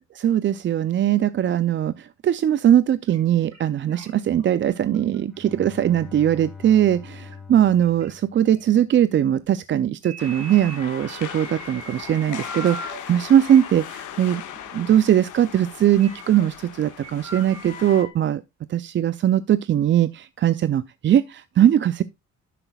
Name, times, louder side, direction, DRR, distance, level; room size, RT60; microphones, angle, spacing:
voice 1, 0.1-14.4 14.7-18.4 18.7-22.0, right 10 dB, 40° right, 0.4 m, -20 dB
sound 1, 3.1-3.2 3.5-3.6 3.9-4.4 4.9-5.2 5.7-5.8 7.3-7.4 7.8-8.1 8.6-8.7 10.0-13.0 13.4-13.7 14.5-14.6 14.8-14.9 16.0-16.5 16.9-18.1, right 2 dB, 60° right, 4.6 m, -39 dB
Bowed string instrument, 5.2-9.0, left 5 dB, ahead, 3.0 m, -43 dB
sound 2, 10.2-18.0, left 10 dB, 80° left, 1.6 m, -38 dB
10.0 x 7.9 x 2.3 m
cardioid pair, 90°, 30 cm